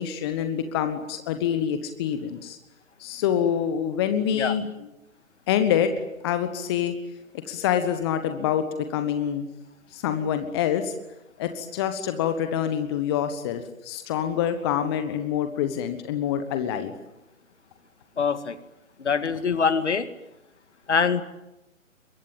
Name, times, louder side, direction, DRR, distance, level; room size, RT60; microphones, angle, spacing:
voice 1, 0.0-2.6 3.0-4.9 5.5-5.9 6.2-6.9 7.5-9.5 9.9-10.9 11.4-16.9, left 9 dB, 20° left, 8 dB, 1.3 m, -26 dB
voice 2, 18.2-18.5 19.0-20.1 20.9-21.2, left 5 dB, 55° left, 11 dB, 2.2 m, -23 dB
24.5 x 23.0 x 9.1 m, 0.91 s
figure-of-eight pair, 140°, 40 cm